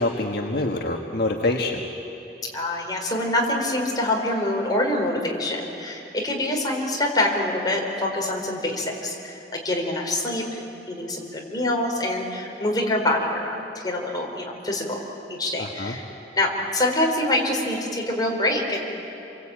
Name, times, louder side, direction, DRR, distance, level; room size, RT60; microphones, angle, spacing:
voice 1, 0.0-1.8 15.6-15.9, left 2 dB, 60° left, 1 dB, 1.6 m, -25 dB
voice 2, 2.5-10.6 10.9-15.0 15.3-16.1 16.3-18.8, left 1 dB, 25° left, 0 dB, 4.5 m, -25 dB
28.5 x 23.5 x 8.9 m, 3.0 s
head